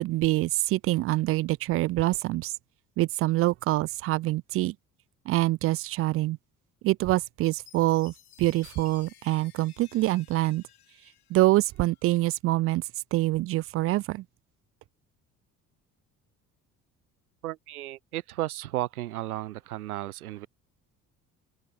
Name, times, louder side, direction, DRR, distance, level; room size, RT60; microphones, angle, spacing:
voice 1, 0.0-2.5 3.0-4.7 5.3-6.4 6.8-8.1 8.4-10.6 11.3-12.8 13.1-14.2, right 17 dB, 35° right, 0.4 m, -25 dB
Chime, 7.4-12.0, left 11 dB, 75° left, 3.8 m, -56 dB
voice 2, 17.4-20.5, right 15 dB, 75° right, 0.8 m, -34 dB
figure-of-eight pair, 50°, 44 cm